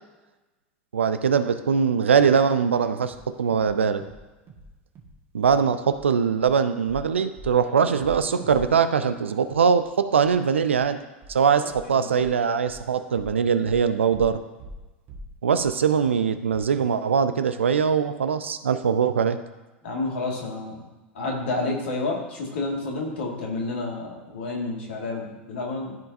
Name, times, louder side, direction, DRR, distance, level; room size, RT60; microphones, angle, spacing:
voice 1, 0.9-4.0 5.3-11.0 11.3-14.4 15.4-19.4, right 6 dB, 80° right, 10 dB, 0.5 m, -22 dB
sound 1, 3.0-3.2 3.5-3.7 4.0-4.2 4.5-4.7 5.0-5.2 5.4-5.6 5.9-6.0 6.4-6.5 6.9-7.1 7.4-7.6 7.8-9.9 10.2-10.3 10.7-10.8 11.2-11.4 11.7-11.8 12.2-12.3 12.7-12.8 13.1-13.3 13.6-13.8 14.1-14.3 14.6-14.8 15.1-15.3 15.6-15.7 16.0-16.1 16.5-16.6, right 1 dB, 35° right, 1.6 m, -42 dB
voice 2, 19.8-20.9 21.1-26.0, left 2 dB, 70° left, -1 dB, 2.0 m, -30 dB
13.5 x 4.6 x 2.7 m, 1.1 s
figure-of-eight pair, 85°, 6 cm